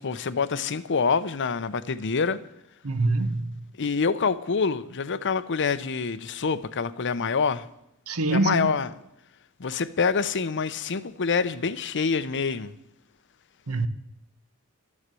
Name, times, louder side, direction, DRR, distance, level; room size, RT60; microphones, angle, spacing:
voice 1, 0.0-2.4 3.8-7.7 8.3-8.9 9.6-12.7, left 5 dB, 55° left, 0.7 m, -26 dB
voice 2, 2.8-3.6 8.1-8.7 13.7-13.9, right 3 dB, 70° right, 1.0 m, -25 dB
13.0 x 9.7 x 7.6 m
head